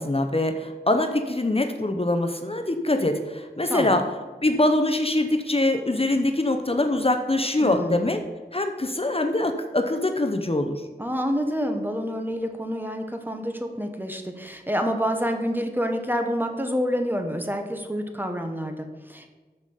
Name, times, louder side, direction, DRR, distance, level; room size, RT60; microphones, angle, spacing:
voice 1, 0.0-4.0 4.4-8.2 8.5-10.8, left 2 dB, 35° left, 5 dB, 0.9 m, -23 dB
voice 2, 7.6-8.1 11.0-19.3, equal, 10° right, 5 dB, 1.3 m, -28 dB
13.0 x 5.3 x 5.6 m, 1.3 s
wide cardioid pair, 50°, 17 cm